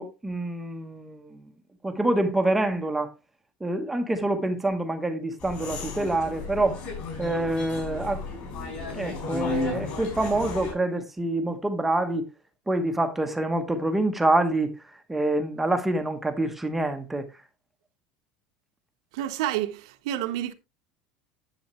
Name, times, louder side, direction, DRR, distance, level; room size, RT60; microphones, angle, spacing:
voice 1, 0.0-1.4 1.8-3.1 3.6-6.8 7.2-12.3 12.7-14.8 15.1-17.3, right 2 dB, 5° right, 1.0 m, -26 dB
sound 1, 5.4-10.7, left 4 dB, 45° left, 5.8 m, -34 dB
voice 2, 19.1-20.5, right 13 dB, 80° right, 1.2 m, -29 dB
10.0 x 7.8 x 3.1 m
cardioid pair, 165°, 3 cm